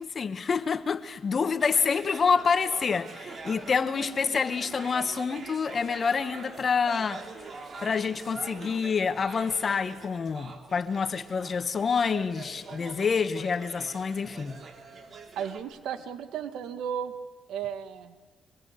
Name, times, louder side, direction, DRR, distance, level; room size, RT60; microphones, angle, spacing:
voice 1, 0.0-7.3 7.8-14.6, left 5 dB, 40° left, 1.3 m, -27 dB
sound 1, 1.6-15.6, right 4 dB, 45° right, 3.1 m, -44 dB
voice 2, 15.3-17.1 17.5-18.1, right 8 dB, 85° right, 1.8 m, -34 dB
24.0 x 23.5 x 8.2 m
cardioid pair, 90°, 0 cm